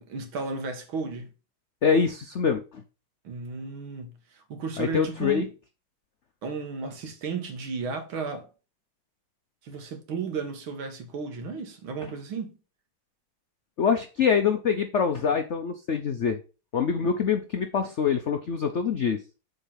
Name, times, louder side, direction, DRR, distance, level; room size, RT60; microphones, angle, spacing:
voice 1, 0.0-1.3 3.2-5.5 6.4-8.5 9.6-12.5 17.0-17.2, right 4 dB, 75° right, 2.2 m, -34 dB
voice 2, 1.8-2.6 4.8-5.5 13.8-16.4 16.7-19.2, left 6 dB, 85° left, 0.6 m, -24 dB
7.2 x 4.1 x 5.7 m
omnidirectional pair, 2.2 m